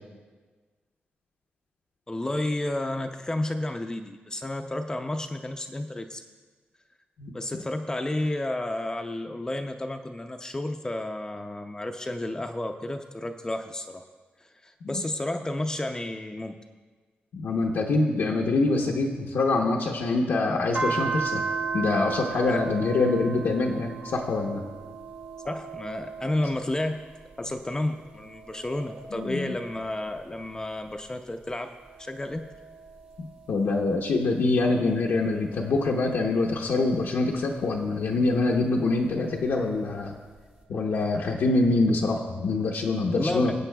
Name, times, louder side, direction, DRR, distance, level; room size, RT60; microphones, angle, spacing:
voice 1, 2.1-6.2 7.3-14.0 14.6-16.6 22.5-22.6 25.5-27.0 27.4-32.5 43.1-43.5, left 1 dB, 20° left, 5 dB, 0.5 m, -31 dB
voice 2, 7.2-7.6 14.8-15.0 17.3-21.4 21.7-24.6 29.1-29.6 33.2-40.1 40.7-43.5, left 3 dB, 90° left, -1 dB, 0.8 m, -25 dB
sound 1, 20.7-27.5 27.9-30.8 31.4-34.2 34.9-37.4 38.7-39.8, right 5 dB, 55° right, 1.4 m, -37 dB
21.5 x 8.0 x 2.3 m, 1.4 s
wide cardioid pair, 110°, 4 cm